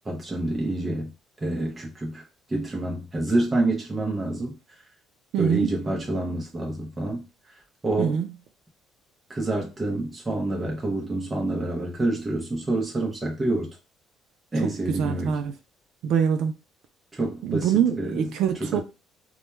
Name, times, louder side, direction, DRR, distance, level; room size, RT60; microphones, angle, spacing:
voice 1, 0.1-1.1 1.4-2.2 2.5-4.6 5.4-7.2 7.8-8.2 9.3-13.8 14.5-15.4 17.1-18.3 18.6-18.8, right 2 dB, 15° right, 0.6 m, -27 dB
voice 2, 5.3-5.7 8.0-8.3 14.6-15.5 16.0-16.5 17.4-18.8, right 8 dB, 65° right, 0.3 m, -24 dB
2.2 x 2.1 x 3.0 m
cardioid pair, 150°, 0 cm